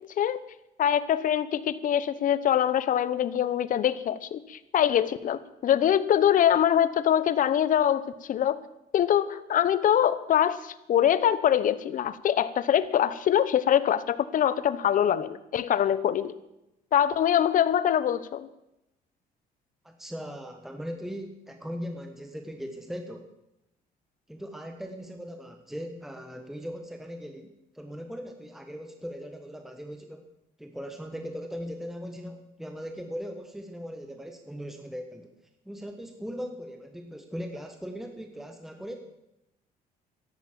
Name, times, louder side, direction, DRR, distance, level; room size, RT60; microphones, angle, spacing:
voice 1, 0.8-8.6 8.9-16.3 16.9-18.5, left 10 dB, 50° left, 15 dB, 1.0 m, -24 dB
voice 2, 19.8-23.3 24.3-30.2 30.6-35.3 35.6-39.0, equal, ahead, 5 dB, 1.4 m, -39 dB
13.5 x 11.5 x 7.5 m, 0.89 s
cardioid pair, 110°, 17 cm